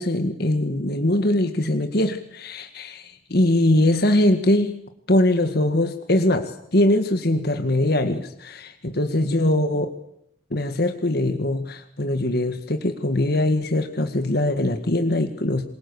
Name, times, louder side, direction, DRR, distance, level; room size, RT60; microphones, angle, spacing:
voice 1, 0.0-4.8 5.1-9.9 10.5-15.6, left 1 dB, 55° left, 7 dB, 1.8 m, -22 dB
27.5 x 22.5 x 7.1 m, 0.75 s
head